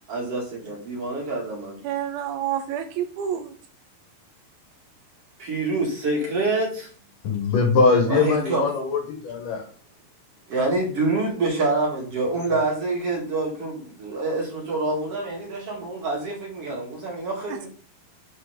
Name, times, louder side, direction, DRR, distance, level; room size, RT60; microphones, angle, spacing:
voice 1, 0.1-1.8 5.4-6.9 8.1-8.6 10.5-17.7, right 2 dB, 45° right, -2 dB, 2.4 m, -26 dB
voice 2, 1.8-3.5 17.5-17.7, right 10 dB, 80° right, 6 dB, 2.4 m, -29 dB
voice 3, 7.2-9.7, left 4 dB, 65° left, 3 dB, 2.5 m, -21 dB
6.3 x 5.7 x 5.0 m, 0.43 s
omnidirectional pair, 4.6 m